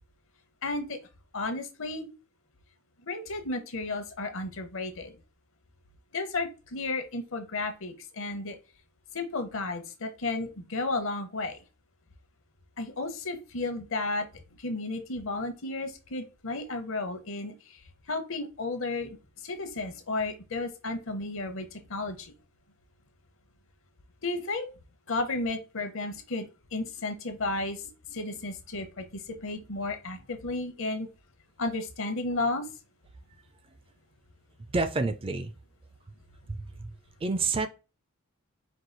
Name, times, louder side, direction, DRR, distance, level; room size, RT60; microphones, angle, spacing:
voice 1, 0.6-1.0 1.3-2.1 3.1-5.2 6.1-8.6 9.1-11.6 12.8-14.3 14.6-17.8 18.1-19.2 19.4-22.3 24.2-24.7 25.1-31.1 31.6-32.6, left 2 dB, 65° left, 0.8 m, -33 dB
voice 2, 34.7-35.5 36.5-36.9 37.2-37.7, right 3 dB, 25° right, 0.4 m, -28 dB
4.6 x 2.3 x 3.9 m
head